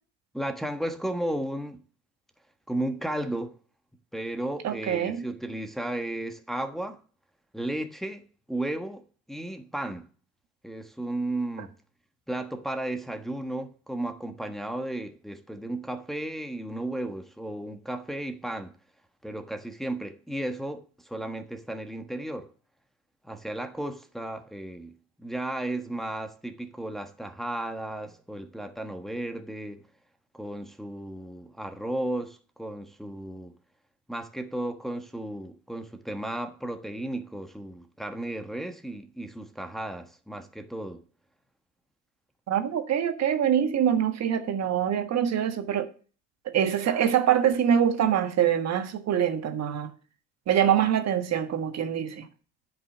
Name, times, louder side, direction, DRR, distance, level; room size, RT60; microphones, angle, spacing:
voice 1, 0.3-1.8 2.7-3.5 4.1-7.0 7.5-8.2 8.5-9.0 9.3-10.1 10.6-11.7 12.3-18.7 19.2-22.5 23.2-29.8 30.3-33.5 34.1-41.0, right 1 dB, ahead, 1.3 m, -34 dB
voice 2, 4.6-5.2 42.5-45.9 46.4-49.9 50.5-52.3, right 9 dB, 50° right, 1.4 m, -24 dB
9.5 x 5.6 x 7.2 m
hypercardioid pair, 75°, 34 cm